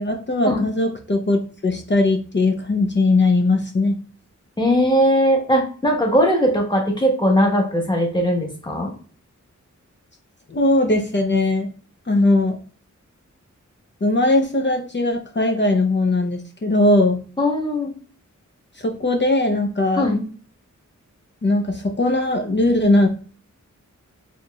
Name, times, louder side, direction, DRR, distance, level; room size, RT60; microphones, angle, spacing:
voice 1, 0.0-3.9 10.5-11.7 12.1-12.6 14.0-17.2 18.8-20.1 21.4-23.1, left 2 dB, 35° left, 4 dB, 0.7 m, -19 dB
voice 2, 4.6-8.9 17.4-17.9 20.0-20.3, equal, 15° left, 0 dB, 1.3 m, -19 dB
4.3 x 3.1 x 2.3 m, 0.40 s
wide cardioid pair, 70°, 31 cm